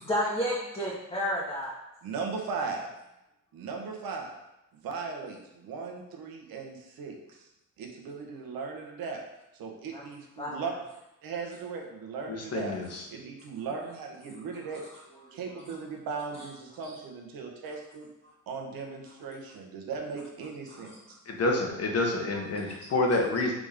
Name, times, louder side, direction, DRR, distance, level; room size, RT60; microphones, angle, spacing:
voice 1, 0.0-1.7 9.9-10.1 10.4-10.7 14.5-14.6 14.8-14.9 15.3-15.8 16.3-16.4 16.8-17.0 20.7-21.0 22.6-22.9, equal, 15° left, -7 dB, 1.3 m, -33 dB
voice 2, 2.0-2.9 3.5-4.3 4.7-7.5 7.8-9.2 9.5-10.7 11.2-12.7 13.1-14.8 15.3-18.1 18.5-20.9, right 5 dB, 80° right, 2 dB, 1.2 m, -37 dB
voice 3, 12.3-13.0 21.3-23.5, left 2 dB, 45° left, 1 dB, 1.3 m, -28 dB
5.1 x 3.7 x 5.2 m, 0.91 s
cardioid pair, 110°, 35 cm